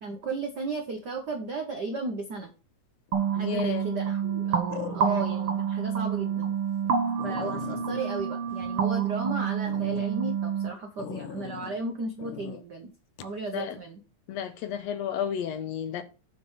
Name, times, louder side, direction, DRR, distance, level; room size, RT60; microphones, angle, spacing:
voice 1, 0.0-2.5 3.3-6.5 7.2-12.9 13.2-14.0, right 3 dB, 80° right, 0.9 m, -35 dB
sound 1, 3.1-3.5 4.7-5.5 5.9-6.0 6.5-6.6 6.9-7.0 7.2-9.2 9.6-10.1 11.0-11.8 12.2-12.6 13.2-13.4, left 12 dB, 90° left, 2.2 m, -41 dB
sound 2, 3.1-10.7, right 7 dB, 60° right, 1.7 m, -28 dB
voice 2, 3.4-3.8 13.5-13.8 14.3-16.0, left 9 dB, 75° left, 1.8 m, -32 dB
7.8 x 5.4 x 5.5 m
omnidirectional pair, 3.5 m